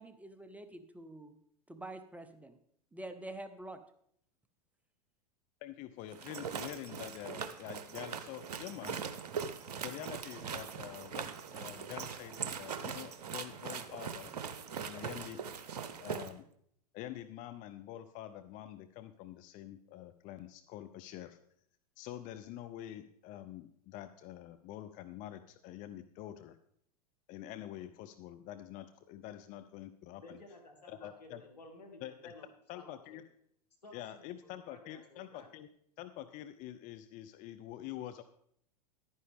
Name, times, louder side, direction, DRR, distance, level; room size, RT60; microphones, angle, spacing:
voice 1, 0.0-1.4 1.7-2.6 2.9-3.8, right 1 dB, 5° right, 9 dB, 0.7 m, -46 dB
voice 2, 5.6-9.0 9.8-14.3 14.8-15.4 16.0-16.4 16.9-21.4 22.0-26.6 27.3-30.4 30.9-31.4 32.0-32.3 32.7-33.2 33.9-35.7 36.0-38.2, left 12 dB, 40° left, 11 dB, 0.6 m, -46 dB
sound 1, 6.1-16.3, right 6 dB, 75° right, 0.8 m, -41 dB
voice 3, 30.2-32.5 32.7-33.2 33.8-35.5, left 2 dB, 85° left, 3 dB, 2.4 m, -55 dB
11.0 x 9.7 x 3.5 m, 0.68 s
hypercardioid pair, 95°, 20 cm